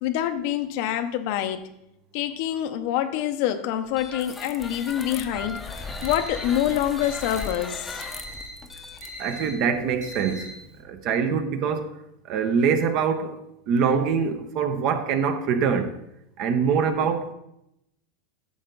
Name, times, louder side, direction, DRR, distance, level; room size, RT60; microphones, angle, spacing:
voice 1, 0.0-1.7 2.1-5.7 6.0-8.0 17.0-17.1, left 11 dB, 60° left, 0.6 m, -26 dB
sound 1, 3.9-9.8, left 3 dB, 10° left, 0.7 m, -37 dB
Alarm, 5.8-10.8, equal, 80° right, 2.9 m, -41 dB
voice 2, 9.2-10.5 10.8-11.9 12.3-13.4 13.7-15.9 16.4-17.3, right 6 dB, 45° right, 0.8 m, -24 dB
8.8 x 6.6 x 3.9 m
supercardioid pair, 145°, 0 cm